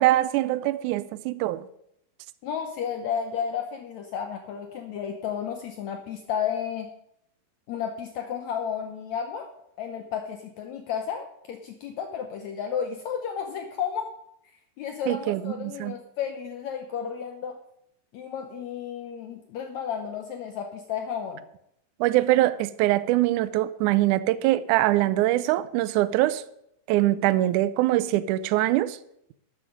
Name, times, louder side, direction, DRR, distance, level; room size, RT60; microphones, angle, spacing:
voice 1, 0.0-1.7 15.1-16.0 22.0-26.4 26.9-29.0, right 15 dB, 90° right, 1.8 m, -23 dB
voice 2, 2.4-6.9 7.7-9.5 9.8-14.1 14.8-17.6 18.1-21.4, left 8 dB, 70° left, 1.8 m, -32 dB
12.5 x 8.3 x 5.2 m
omnidirectional pair, 4.1 m